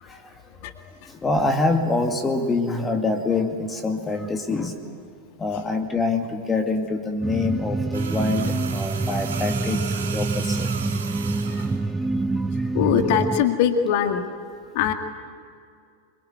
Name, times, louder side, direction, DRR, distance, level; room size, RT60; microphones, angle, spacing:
voice 1, 1.2-4.8 5.4-9.8 10.1-10.7 11.5-11.7 12.4-12.5, left 3 dB, 15° left, 5 dB, 2.2 m, -25 dB
sound 1, 7.2-13.4, right 3 dB, 10° right, 0.7 m, -26 dB
sound 2, 7.9-11.8 13.0-13.2, right 6 dB, 65° right, 3.9 m, -35 dB
voice 2, 12.8-14.2 14.7-14.9, left 8 dB, 50° left, 7 dB, 1.9 m, -21 dB
26.5 x 23.5 x 9.5 m, 2.3 s
figure-of-eight pair, 90°, 0 cm